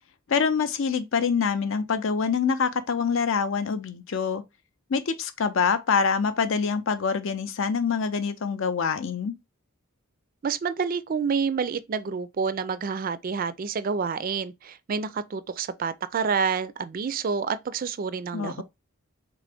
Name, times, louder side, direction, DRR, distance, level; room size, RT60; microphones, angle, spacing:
voice 1, 0.3-4.4 4.9-9.3 18.3-18.6, left 5 dB, 60° left, 0.5 m, -25 dB
voice 2, 10.4-18.6, right 5 dB, 40° right, 0.3 m, -28 dB
3.8 x 3.4 x 3.4 m
head